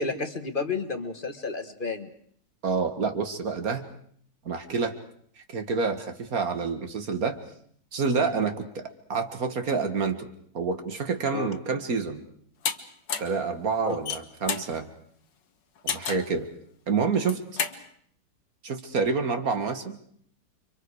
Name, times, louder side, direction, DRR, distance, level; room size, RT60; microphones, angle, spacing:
voice 1, 0.0-2.1 8.2-8.3 11.3-11.5 13.9-14.0, left 4 dB, 30° left, 8 dB, 1.6 m, -31 dB
voice 2, 2.6-3.9 4.5-4.9 5.4-7.4 7.9-10.3 10.5-12.2 13.2-14.9 15.8-16.5 16.9-17.4 18.6-20.0, right 4 dB, 55° right, 7 dB, 2.0 m, -28 dB
sound 1, 12.6-12.8 13.1-13.4 13.9-14.7 15.9-16.3 17.1-17.8, left 7 dB, 85° left, 1.9 m, -30 dB
30.0 x 24.5 x 4.9 m, 0.63 s
omnidirectional pair, 1.9 m